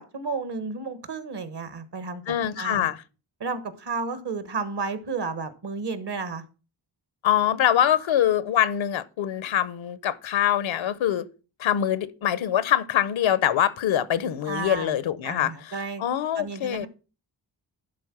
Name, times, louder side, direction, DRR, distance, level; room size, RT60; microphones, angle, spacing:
voice 1, 0.0-2.2 2.6-2.9 3.4-6.4 14.4-14.9 15.2-16.0 16.3-16.9, right 4 dB, 60° right, 1.4 m, -32 dB
voice 2, 2.3-3.0 7.2-11.3 11.6-16.9, left 10 dB, 90° left, 0.8 m, -24 dB
11.5 x 3.8 x 6.0 m
cardioid pair, 60°, 45 cm